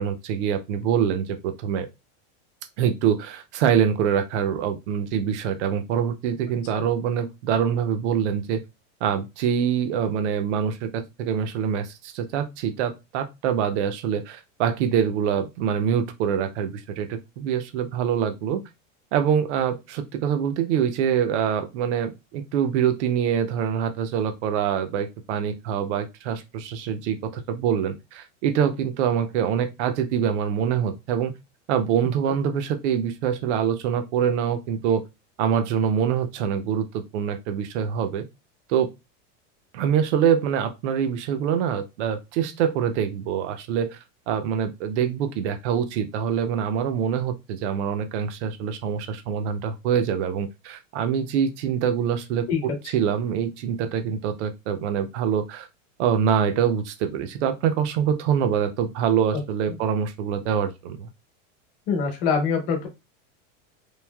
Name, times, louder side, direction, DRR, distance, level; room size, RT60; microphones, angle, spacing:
voice 1, 0.0-1.9 2.8-8.6 9.0-18.6 19.1-31.3 31.7-35.0 35.4-36.9 37.1-38.2 38.7-38.9 39.7-44.0 44.3-55.7 56.0-61.1, right 8 dB, 65° right, 0.6 m, -25 dB
voice 2, 61.9-62.9, left 5 dB, 45° left, 1.0 m, -24 dB
3.2 x 2.5 x 2.2 m
supercardioid pair, 175°, 38 cm